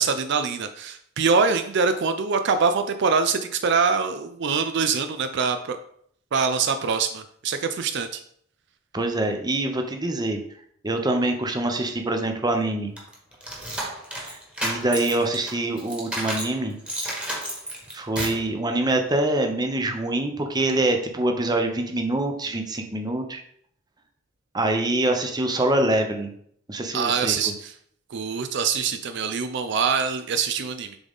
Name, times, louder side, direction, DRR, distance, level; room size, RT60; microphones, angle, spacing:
voice 1, 0.0-5.8 6.3-8.2 26.9-27.7 28.1-31.0, right 5 dB, 60° right, 9 dB, 0.4 m, -24 dB
voice 2, 8.9-10.4 10.8-12.9 14.1-16.8 17.9-23.4 24.5-26.3 26.7-27.5, right 2 dB, 20° right, 4 dB, 0.7 m, -25 dB
sound 1, 13.0-16.5 16.9-18.5, right 1 dB, 5° right, 1.4 m, -31 dB
7.0 x 3.8 x 3.6 m, 0.65 s
head